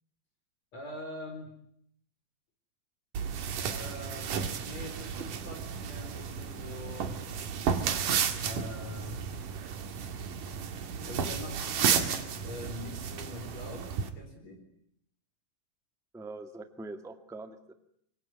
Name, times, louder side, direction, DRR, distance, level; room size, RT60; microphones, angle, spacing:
voice 1, 0.7-1.5 3.6-7.2 8.4-9.2 11.1-13.9 14.2-14.7, left 2 dB, 55° left, 3 dB, 5.7 m, -43 dB
sound 1, 3.1-14.1, right 7 dB, 80° right, 3.6 m, -33 dB
voice 2, 16.1-17.7, right 2 dB, ahead, 8 dB, 0.9 m, -43 dB
26.0 x 23.0 x 9.8 m, 0.70 s
omnidirectional pair, 3.6 m